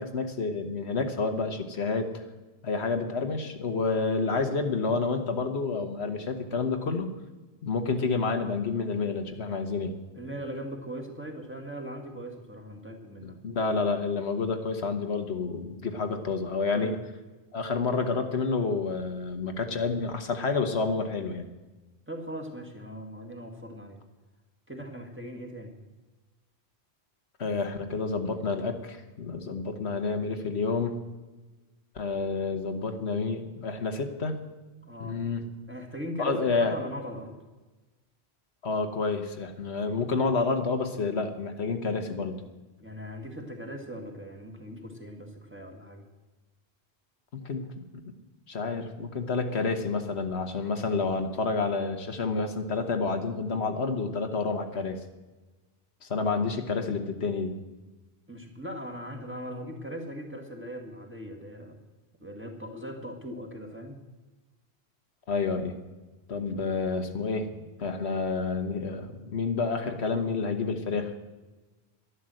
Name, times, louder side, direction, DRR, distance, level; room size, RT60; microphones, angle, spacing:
voice 1, 0.0-2.1 2.6-7.1 7.6-9.9 13.2-16.9 17.5-21.4 27.4-30.9 31.9-34.3 35.0-35.4 36.2-36.7 38.6-42.4 47.3-47.6 47.9-48.0 48.5-55.0 56.0-57.5 65.3-65.7 66.3-67.5 67.8-71.2, left 4 dB, 80° left, 6 dB, 1.5 m, -29 dB
voice 2, 10.1-13.4 16.7-17.0 22.1-24.0 24.7-25.7 34.8-35.2 35.7-37.4 42.8-46.0 58.3-61.8 62.2-64.0, equal, 10° right, 1 dB, 2.0 m, -39 dB
11.5 x 11.0 x 7.7 m, 1.2 s
omnidirectional pair, 1.1 m